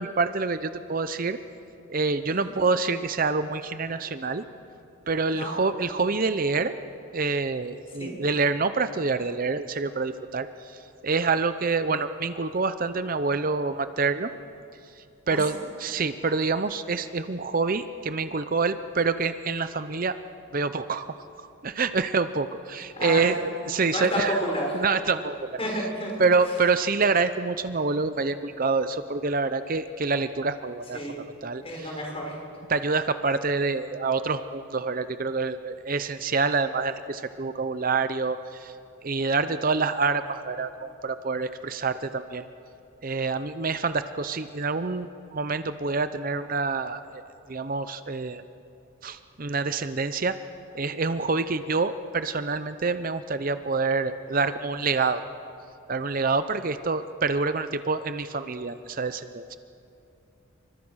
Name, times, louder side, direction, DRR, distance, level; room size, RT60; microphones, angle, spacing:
voice 1, 0.0-1.4 1.9-4.4 5.1-6.7 7.1-14.3 15.3-20.2 20.5-21.1 21.6-24.4 24.7-25.5 26.2-31.0 31.4-32.0 32.7-38.7 39.0-42.5 43.0-47.2 47.5-48.4 49.0-50.4 50.7-55.2 55.9-59.4, right 4 dB, 40° right, 11 dB, 0.6 m, -27 dB
voice 2, 22.9-23.4 23.9-24.8 25.6-26.1 30.9-31.3 31.6-32.4, equal, 25° left, 0 dB, 5.6 m, -30 dB
28.5 x 25.0 x 6.3 m, 2.7 s
head